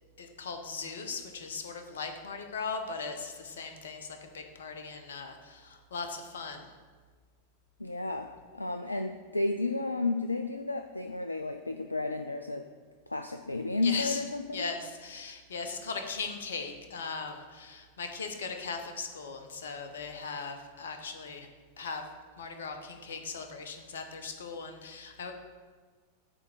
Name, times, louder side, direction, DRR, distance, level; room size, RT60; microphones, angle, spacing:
voice 1, 0.2-6.7 13.8-14.2 14.5-21.5 21.8-22.0 22.4-25.3, left 4 dB, 65° left, 6 dB, 0.9 m, -38 dB
voice 2, 7.8-12.7 13.1-14.7, left 3 dB, 80° left, 7 dB, 0.3 m, -32 dB
8.6 x 3.6 x 6.6 m, 1.5 s
figure-of-eight pair, 90°, 0 cm